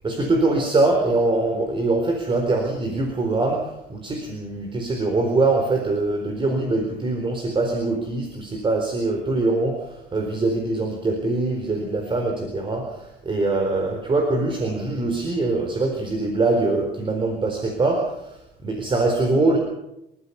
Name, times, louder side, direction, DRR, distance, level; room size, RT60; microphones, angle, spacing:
voice 1, 0.0-19.6, right 2 dB, 30° right, 3 dB, 4.2 m, -23 dB
27.0 x 14.5 x 7.1 m, 0.84 s
cardioid pair, 110°, 17 cm